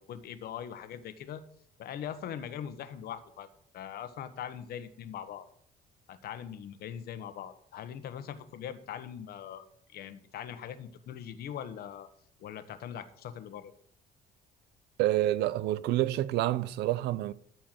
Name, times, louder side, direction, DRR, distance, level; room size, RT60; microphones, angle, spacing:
voice 1, 0.0-1.4 1.8-3.5 3.7-5.5 6.1-12.1 12.4-13.7, left 9 dB, 65° left, 1.2 m, -41 dB
voice 2, 15.0-17.3, right 14 dB, 80° right, 0.6 m, -28 dB
13.5 x 4.6 x 7.6 m
cardioid pair, 110°, 17 cm